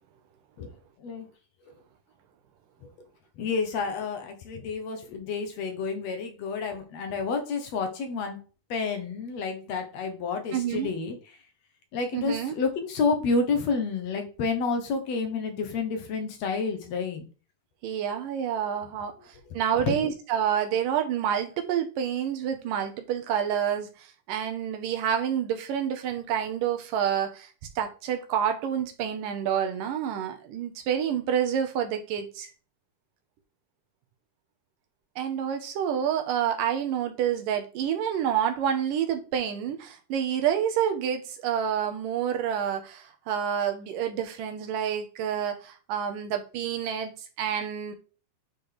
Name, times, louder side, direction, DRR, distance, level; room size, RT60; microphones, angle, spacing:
voice 1, 3.4-8.4 8.7-11.4 11.9-17.3 19.8-20.0, left 4 dB, 65° left, 2.0 m, -29 dB
voice 2, 10.5-10.9 12.1-12.6 17.8-19.1 19.5-23.9 24.3-27.5 27.8-32.5 35.2-47.1 47.4-47.9, right 9 dB, 80° right, 2.7 m, -28 dB
9.7 x 4.5 x 3.4 m
omnidirectional pair, 3.8 m